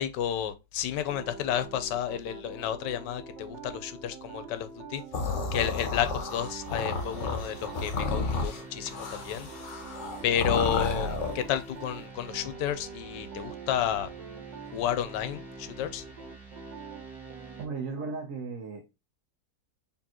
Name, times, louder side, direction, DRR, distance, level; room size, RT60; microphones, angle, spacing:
voice 1, 0.0-5.0 5.5-9.5 10.2-14.1 14.7-16.0, left 10 dB, 80° left, 1.2 m, -31 dB
sound 1, 1.1-18.1, right 5 dB, 85° right, 1.6 m, -45 dB
sound 2, 5.1-11.5, left 4 dB, 50° left, 1.1 m, -32 dB
sound 3, 6.3-17.7, right 3 dB, ahead, 1.2 m, -49 dB
voice 2, 17.6-18.9, right 4 dB, 55° right, 1.0 m, -36 dB
4.4 x 3.5 x 2.9 m
omnidirectional pair, 1.9 m